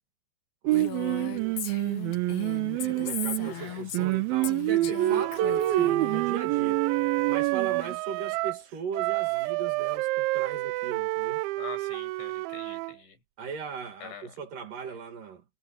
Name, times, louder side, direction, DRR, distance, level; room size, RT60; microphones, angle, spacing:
voice 1, 0.6-1.6 2.7-6.8 7.3-11.4 13.4-15.4, right 6 dB, 55° right, 3.3 m, -38 dB
Female speech woman speaking, 0.7-4.1 4.4-6.2, left 11 dB, 65° left, 2.1 m, -38 dB
Singing, 0.7-8.0, right 16 dB, 70° right, 2.4 m, -27 dB
Wind instrument woodwind instrument, 4.9-8.6 8.9-13.0, right 22 dB, 90° right, 2.9 m, -30 dB
voice 2, 11.6-13.2 14.0-14.4 14.8-14.9, left 6 dB, 85° left, 9.4 m, -44 dB
omnidirectional pair, 5.2 m